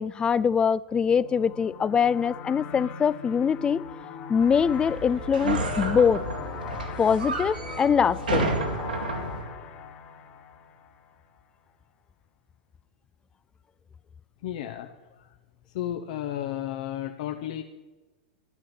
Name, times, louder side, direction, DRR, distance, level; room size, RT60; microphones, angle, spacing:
voice 1, 0.0-3.9 4.3-6.2 7.0-8.6, left 7 dB, 20° left, 20 dB, 0.3 m, -23 dB
sound 1, 1.0-11.4, left 6 dB, 35° left, 1.4 m, -40 dB
sound 2, 4.4-9.4, right 2 dB, 80° right, 2.3 m, -31 dB
voice 2, 14.4-15.3 15.7-17.6, left 11 dB, 55° left, 5 dB, 0.8 m, -33 dB
11.5 x 11.0 x 5.8 m, 1.2 s
figure-of-eight pair, 95°, 5 cm